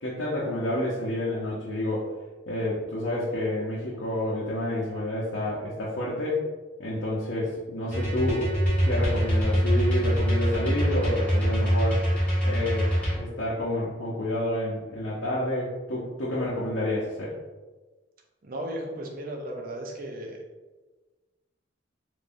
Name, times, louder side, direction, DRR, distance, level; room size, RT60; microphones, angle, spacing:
voice 1, 0.0-2.1 2.5-6.4 6.8-8.6 8.8-12.1 12.4-17.3, left 1 dB, 70° left, -7 dB, 0.7 m, -29 dB
sound 1, 7.9-13.2, equal, 5° left, 1.0 m, -24 dB
voice 2, 18.4-20.4, right 1 dB, 45° right, 1 dB, 0.6 m, -35 dB
3.5 x 3.2 x 2.6 m, 1.2 s
head